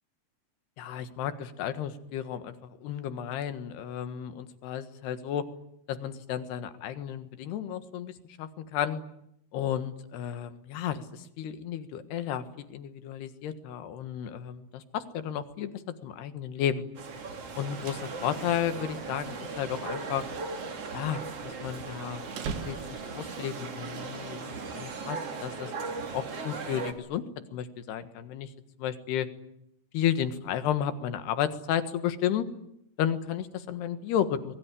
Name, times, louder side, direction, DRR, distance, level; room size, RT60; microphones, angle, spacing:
voice 1, 0.8-2.6 2.8-5.4 5.9-9.0 9.5-16.9 17.6-20.3 20.9-22.2 22.7-25.7 26.1-27.2 27.5-28.5 28.8-29.3 29.9-32.5 33.0-34.5, left 9 dB, 75° left, 10 dB, 3.6 m, -33 dB
sound 1, 16.9-26.9, right 4 dB, 40° right, 3.1 m, -38 dB
sound 2, 17.5-23.3, right 6 dB, 85° right, 4.7 m, -44 dB
25.5 x 22.5 x 10.0 m, 0.77 s
omnidirectional pair, 5.0 m